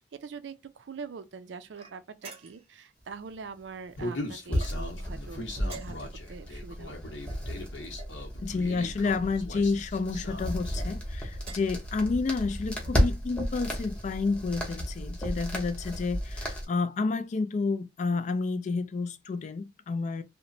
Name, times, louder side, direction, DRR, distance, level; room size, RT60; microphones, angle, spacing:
voice 1, 0.0-7.2, right 5 dB, 75° right, 0.4 m, -44 dB
sound 1, 1.7-2.8 4.5-5.1 5.6-6.3 7.2-8.2 9.1-9.6 10.6-10.9 11.4-11.8, right 4 dB, 35° right, 0.7 m, -48 dB
Human voice, 4.0-10.8, left 1 dB, 75° left, 0.8 m, -39 dB
sound 2, 4.5-16.6, equal, 5° left, 0.7 m, -33 dB
voice 2, 8.4-20.2, left 4 dB, 40° left, 0.3 m, -30 dB
2.9 x 2.1 x 2.5 m
head